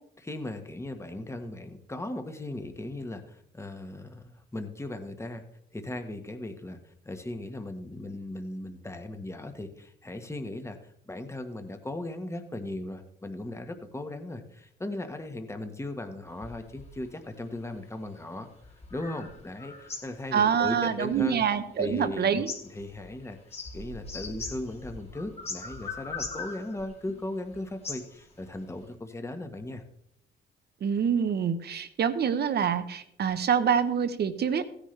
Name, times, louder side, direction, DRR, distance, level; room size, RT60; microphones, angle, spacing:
voice 1, 0.2-5.4 5.7-6.8 7.0-10.8 11.1-18.5 18.9-21.4 21.8-22.3 22.7-23.4 23.7-29.8, left 1 dB, 15° left, 6 dB, 1.4 m, -37 dB
sound 1, 16.3-17.7 18.4-22.1 22.3-28.8, left 4 dB, 30° left, 2.6 m, -41 dB
voice 2, 20.3-22.5 30.8-34.6, right 7 dB, 55° right, 12 dB, 1.1 m, -26 dB
15.5 x 10.0 x 3.3 m, 0.72 s
cardioid pair, 90°, 20 cm